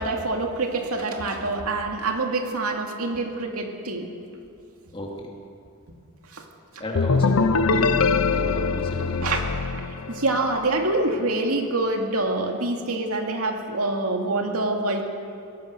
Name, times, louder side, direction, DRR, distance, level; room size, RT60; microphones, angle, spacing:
voice 1, 0.0-4.1 6.3-6.5 9.2-9.4 10.1-15.0, right 2 dB, 80° right, 2 dB, 2.4 m, -26 dB
voice 2, 4.9-5.3 6.8-9.4, left 1 dB, 25° left, -1 dB, 2.9 m, -33 dB
sound 1, 6.9-10.7, left 4 dB, 70° left, 0.6 m, -23 dB
22.0 x 17.5 x 6.6 m, 2.4 s
head